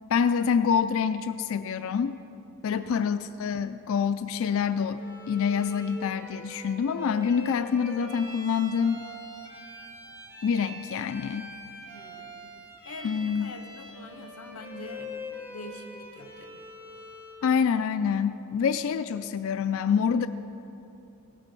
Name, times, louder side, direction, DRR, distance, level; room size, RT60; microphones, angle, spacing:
voice 1, 0.1-2.2 2.6-5.0 5.3-9.1 10.4-11.5 13.0-13.5 17.4-20.3, left 6 dB, 65° left, 11 dB, 0.3 m, -26 dB
voice 2, 2.7-3.2 11.9-12.6 12.8-16.6, left 2 dB, 90° left, 7 dB, 0.8 m, -45 dB
Bowed string instrument, 5.0-17.5, left 1 dB, 10° right, 1.8 m, -43 dB
17.5 x 7.5 x 5.3 m, 2.9 s
head